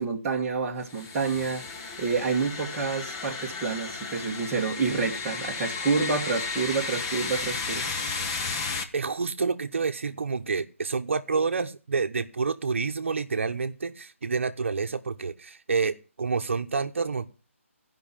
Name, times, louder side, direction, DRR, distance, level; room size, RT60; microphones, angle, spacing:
voice 1, 0.0-1.6 2.0-7.9, right 4 dB, 15° right, 1.5 m, -28 dB
sound 1, 0.8-8.8, left 4 dB, 20° left, 1.0 m, -33 dB
voice 2, 8.9-17.3, right 4 dB, 60° right, 1.0 m, -28 dB
15.0 x 5.6 x 7.3 m
hypercardioid pair, 165°, 8 cm